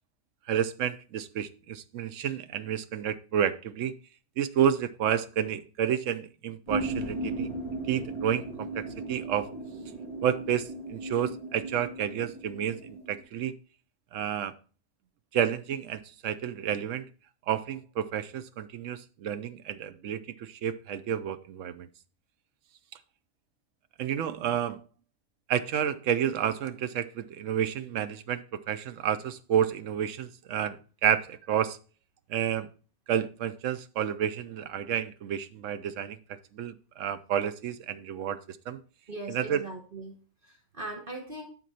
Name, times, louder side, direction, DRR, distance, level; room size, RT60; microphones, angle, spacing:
voice 1, 0.5-3.9 4.4-7.5 7.9-9.5 10.2-13.5 14.1-14.5 15.3-17.1 17.5-21.9 24.0-24.8 25.5-31.8 32.3-32.7 33.1-38.8 39.3-39.7, right 9 dB, 70° right, 1.0 m, -30 dB
sound 1, 6.7-13.2, right 2 dB, 20° right, 2.1 m, -37 dB
voice 2, 39.1-40.1 40.4-41.5, right 2 dB, 40° right, 1.4 m, -40 dB
11.0 x 4.5 x 4.2 m
omnidirectional pair, 1.4 m